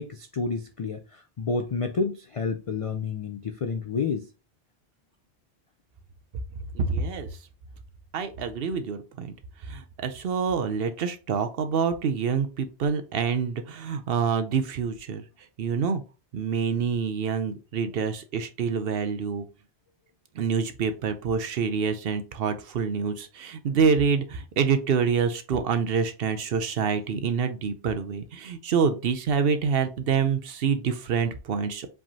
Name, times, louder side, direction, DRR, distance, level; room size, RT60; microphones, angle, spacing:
voice 1, 0.0-4.3, left 4 dB, 60° left, 0.3 m, -30 dB
voice 2, 6.7-7.3 8.1-9.3 9.6-15.2 15.6-16.0 16.3-19.4 20.3-31.9, right 6 dB, 65° right, 0.8 m, -26 dB
5.0 x 3.6 x 2.7 m
omnidirectional pair, 1.1 m